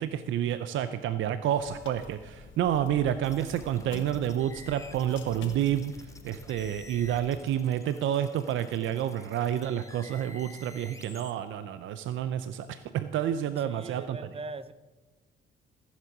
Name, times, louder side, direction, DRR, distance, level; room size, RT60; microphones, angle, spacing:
voice 1, 0.0-14.2, right 10 dB, 75° right, 12 dB, 0.6 m, -29 dB
sound 1, 1.6-7.4, left 5 dB, 70° left, 1.4 m, -48 dB
sound 2, 3.2-11.3, left 3 dB, 15° left, 1.1 m, -51 dB
voice 2, 13.6-14.7, right 3 dB, 30° right, 15 dB, 0.7 m, -40 dB
14.5 x 7.4 x 6.0 m, 1.2 s
cardioid pair, 90°, 20 cm